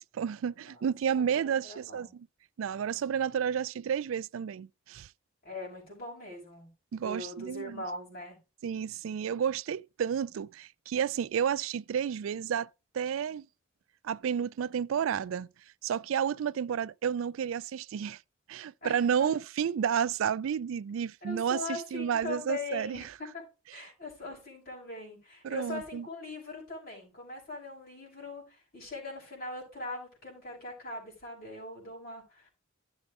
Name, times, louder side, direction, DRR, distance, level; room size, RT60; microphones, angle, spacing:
voice 1, 0.1-2.3 2.6-5.1 6.9-7.8 8.6-12.7 12.9-13.5 14.0-15.5 15.8-18.2 18.5-23.0 25.4-26.0, right 8 dB, 85° right, 0.3 m, -31 dB
voice 2, 1.2-2.2 5.4-6.7 7.0-8.4 18.8-19.3 21.2-23.4 23.7-32.5, left 2 dB, 50° left, 6.1 m, -41 dB
15.0 x 7.1 x 2.5 m
head